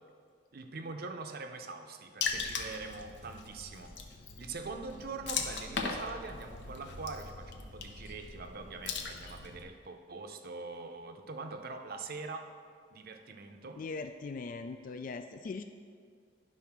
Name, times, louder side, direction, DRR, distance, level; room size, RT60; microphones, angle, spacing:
voice 1, 0.5-4.0 4.4-12.5 12.9-13.8, right 3 dB, 55° right, 6 dB, 0.6 m, -43 dB
Water / Splash splatter, 2.2-9.6, left 5 dB, 65° left, 0.7 m, -39 dB
voice 2, 13.8-15.6, left 4 dB, 45° left, 8 dB, 0.3 m, -40 dB
10.5 x 4.1 x 5.9 m, 2.1 s
head